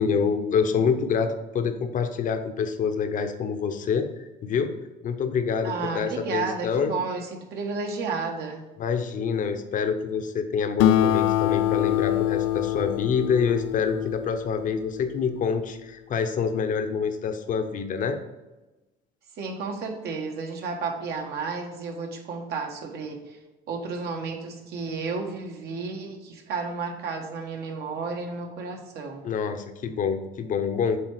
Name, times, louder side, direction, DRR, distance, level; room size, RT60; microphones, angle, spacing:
voice 1, 0.0-4.7 5.0-6.9 8.8-18.2 29.2-31.0, left 6 dB, 45° left, 7 dB, 0.9 m, -26 dB
voice 2, 5.6-8.7 19.4-23.4 23.7-29.3, right 4 dB, 60° right, 2 dB, 1.5 m, -32 dB
Acoustic guitar, 10.8-15.6, left 12 dB, 90° left, 0.5 m, -25 dB
7.7 x 3.6 x 4.8 m, 1.1 s
cardioid pair, 105°, 18 cm